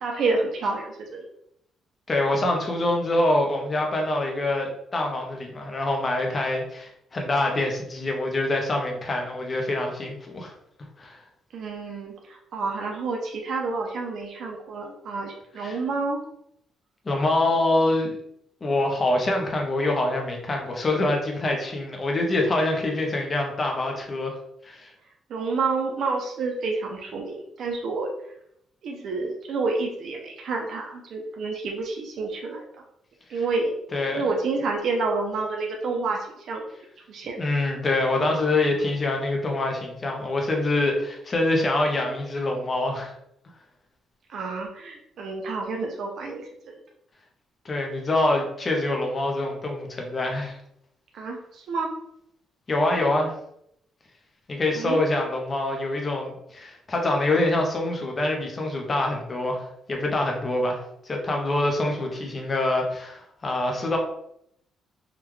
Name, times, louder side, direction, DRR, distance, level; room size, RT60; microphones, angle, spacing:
voice 1, 0.0-1.3 11.5-16.2 25.3-28.1 28.8-32.6 33.3-33.7 34.1-36.7 37.1-37.4 44.3-46.4 51.1-51.9 54.8-55.0, right 3 dB, 60° right, 1 dB, 0.5 m, -29 dB
voice 2, 2.1-10.5 11.0-11.2 15.5-15.8 17.1-18.2 18.6-24.3 24.6-24.9 33.3-33.4 33.9-34.3 37.4-43.1 47.6-50.6 52.7-53.3 54.5-64.0, left 2 dB, 25° left, 1 dB, 0.6 m, -25 dB
3.6 x 2.3 x 3.1 m, 0.76 s
cardioid pair, 150°, 0 cm